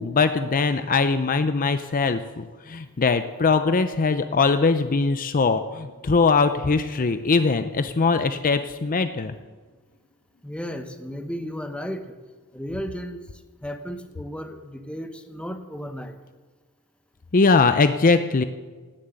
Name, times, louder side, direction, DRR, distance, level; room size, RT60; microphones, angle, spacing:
voice 1, 0.0-9.4 17.3-18.4, left 4 dB, 40° left, 10 dB, 0.6 m, -21 dB
voice 2, 10.4-12.1 12.5-13.2 13.6-16.1, equal, 5° left, 7 dB, 1.1 m, -34 dB
17.5 x 7.5 x 8.9 m, 1.4 s
head